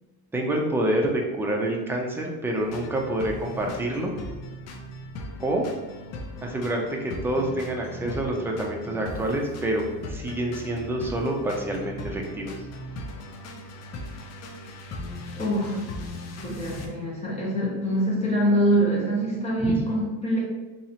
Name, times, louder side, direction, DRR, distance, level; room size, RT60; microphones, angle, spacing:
voice 1, 0.3-4.1 5.4-5.7 6.4-12.5 19.6-19.8, right 1 dB, 5° right, 0 dB, 0.5 m, -27 dB
sound 1, 2.5-16.9, left 1 dB, 40° left, 0.6 m, -38 dB
voice 2, 15.3-15.8 16.4-20.4, right 1 dB, 15° left, -5 dB, 1.3 m, -24 dB
4.1 x 2.9 x 2.8 m, 1.2 s
cardioid pair, 120°, 39 cm